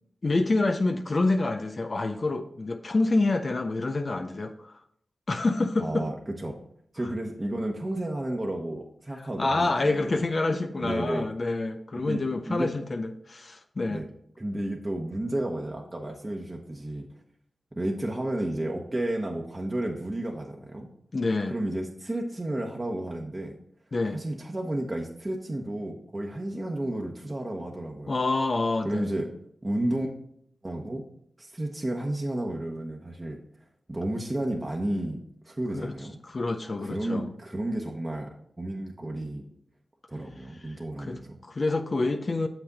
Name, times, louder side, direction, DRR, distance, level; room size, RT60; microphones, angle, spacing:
voice 1, 0.2-4.8 5.3-6.1 9.1-14.0 21.1-21.6 23.9-24.2 28.1-29.1 35.7-35.9 36.2-37.3 40.6-42.5, left 2 dB, 50° left, 7 dB, 0.5 m, -27 dB
voice 2, 5.8-6.6 6.9-10.2 10.8-11.2 12.0-12.7 13.9-14.1 14.4-17.1 17.7-20.9 21.5-23.6 24.1-28.2 28.8-29.3 29.6-30.1 30.6-31.0 31.4-33.4 33.9-35.2 35.4-36.2 36.8-38.3 38.6-39.5 40.1-41.3, right 1 dB, 30° right, 0 dB, 1.1 m, -32 dB
7.0 x 6.0 x 4.0 m, 0.68 s
cardioid pair, 45°, 0 cm